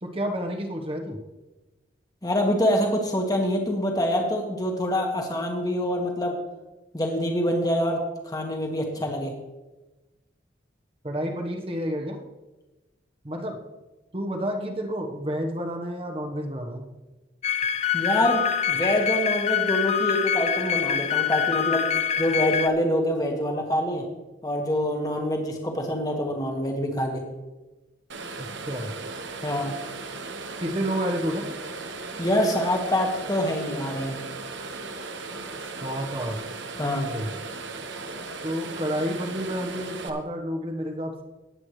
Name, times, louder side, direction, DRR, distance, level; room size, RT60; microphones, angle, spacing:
voice 1, 0.0-1.2 11.0-12.2 13.2-13.6 14.1-16.9 28.4-28.9 30.6-31.5 35.8-36.4 36.8-37.3 38.4-41.2, equal, 30° right, 3 dB, 1.1 m, -30 dB
voice 2, 2.2-6.3 6.9-9.3 17.9-21.9 22.2-24.0 24.4-27.2 29.4-29.7 32.2-34.2 36.8-37.1, equal, 20° left, 2 dB, 1.5 m, -25 dB
sound 1, 17.4-22.7, left 9 dB, 35° left, 0.5 m, -25 dB
sound 2, 28.1-40.1, right 3 dB, 75° right, 1.1 m, -37 dB
19.5 x 8.4 x 3.2 m, 1.1 s
head